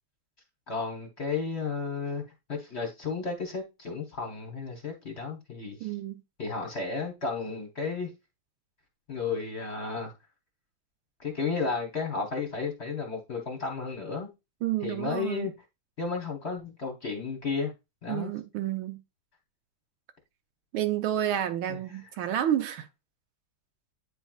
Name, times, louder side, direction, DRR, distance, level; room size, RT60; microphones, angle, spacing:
voice 1, 0.7-2.2 2.5-5.9 6.4-8.1 9.1-10.1 11.2-14.3 14.8-15.5 16.0-17.7 18.0-18.3 21.7-21.8, left 4 dB, 35° left, 1.2 m, -33 dB
voice 2, 5.8-6.2 14.6-15.5 18.1-19.0 20.7-22.9, right 11 dB, 75° right, 1.5 m, -30 dB
9.1 x 4.5 x 2.4 m
omnidirectional pair, 2.3 m